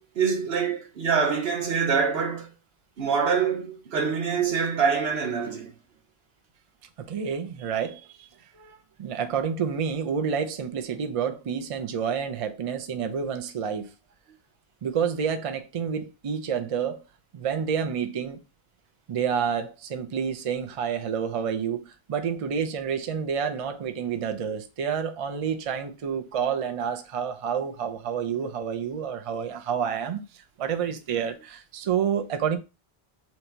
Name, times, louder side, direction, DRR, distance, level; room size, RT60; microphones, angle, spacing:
voice 1, 0.2-2.5 3.0-5.7, right 6 dB, 75° right, 1.1 m, -25 dB
voice 2, 7.0-8.3 8.5-13.9 14.8-17.0 17.3-18.4 19.1-32.6, right 7 dB, 45° right, 0.4 m, -29 dB
2.9 x 2.7 x 4.4 m
omnidirectional pair, 1.0 m